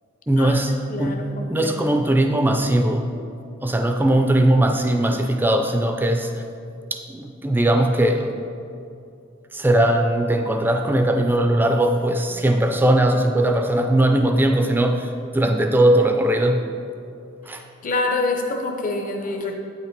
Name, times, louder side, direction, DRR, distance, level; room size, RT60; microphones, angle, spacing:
voice 1, 0.3-3.1 3.6-6.4 6.9-8.4 9.5-16.7 17.4-17.6, right 1 dB, 10° right, 4 dB, 0.4 m, -19 dB
voice 2, 0.9-1.8 17.5-19.5, left 2 dB, 40° left, 3 dB, 0.6 m, -27 dB
8.4 x 5.7 x 4.5 m, 2.6 s
head